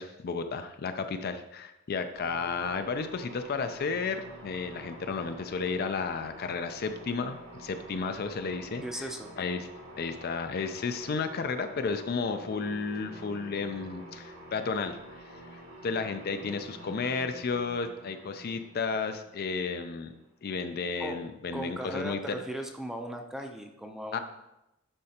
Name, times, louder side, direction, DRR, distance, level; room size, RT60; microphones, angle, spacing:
voice 1, 0.0-9.1 9.4-9.7 10.0-15.2 15.5-20.1 20.4-22.2 24.1-24.2, left 4 dB, 50° left, 8 dB, 0.4 m, -33 dB
sound 1, 2.1-20.4, right 1 dB, 75° right, 1.9 m, -48 dB
voice 2, 8.8-9.3 21.0-21.2 21.5-24.2, equal, ahead, 3 dB, 0.5 m, -37 dB
10.0 x 4.3 x 2.9 m, 0.91 s
head